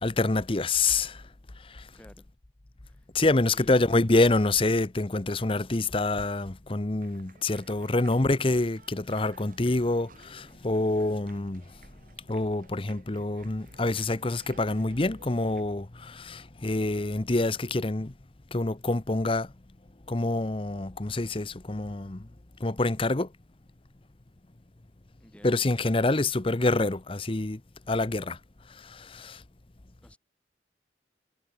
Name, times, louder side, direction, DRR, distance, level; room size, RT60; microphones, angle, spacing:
voice 1, 0.0-1.2 1.6-1.9 3.1-11.6 12.3-18.1 18.5-19.5 20.1-22.3 22.6-23.3 25.4-27.6 27.9-28.4 28.7-29.4, left 2 dB, 30° left, 0.8 m, -26 dB
voice 2, 1.9-2.3 2.8-3.1 3.3-3.9 25.2-25.6 30.0-30.2, equal, 5° left, 6.6 m, -51 dB
sound 1, 7.0-15.6, right 3 dB, 50° right, 5.1 m, -56 dB
head